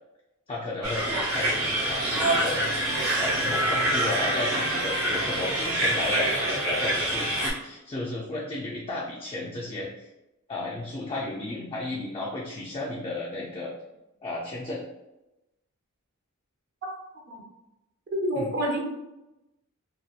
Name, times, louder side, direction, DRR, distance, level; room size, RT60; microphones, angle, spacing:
voice 1, 0.5-2.6 3.2-10.1 10.5-13.7 14.2-14.8 18.3-18.5, left 2 dB, 25° left, -4 dB, 0.3 m, -33 dB
sound 1, 0.8-7.5, right 1 dB, 80° right, 0.8 m, -26 dB
voice 2, 18.1-18.8, equal, 55° right, -2 dB, 0.6 m, -27 dB
2.7 x 2.1 x 2.3 m, 0.95 s
head